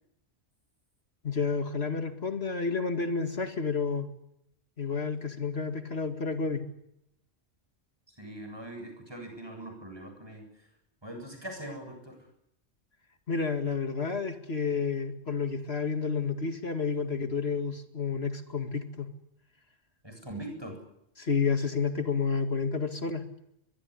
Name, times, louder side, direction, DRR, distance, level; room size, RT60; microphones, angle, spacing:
voice 1, 1.2-4.1 4.8-6.6 13.3-19.1 21.2-23.3, left 5 dB, 65° left, 7 dB, 2.3 m, -30 dB
voice 2, 8.1-10.7 11.0-12.2 20.0-20.8, right 1 dB, 20° right, 4 dB, 7.9 m, -42 dB
24.0 x 22.0 x 9.9 m, 0.80 s
omnidirectional pair, 1.1 m